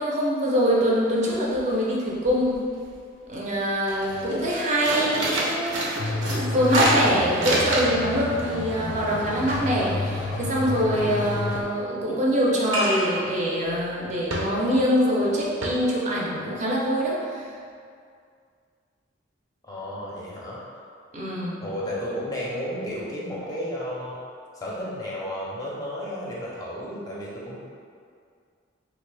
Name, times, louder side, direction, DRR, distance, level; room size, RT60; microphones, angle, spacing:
voice 1, 0.0-2.6 3.3-5.9 6.2-17.5 21.1-21.6, equal, 40° right, -4 dB, 0.5 m, -24 dB
sound 1, 0.9-1.0 1.3-1.8 2.1-2.9 3.3-3.5 3.8-8.1 8.4-10.8 12.7-13.2 13.6-13.8 14.3-14.9 15.2-15.3 15.6-15.7, right 1 dB, 85° right, 0.6 m, -27 dB
sound 2, 6.0-11.6, left 2 dB, 75° left, 0.5 m, -30 dB
voice 2, 19.7-20.6 21.6-24.2 24.5-27.6, equal, 20° left, -6 dB, 0.5 m, -32 dB
3.3 x 2.4 x 3.2 m, 2.2 s
head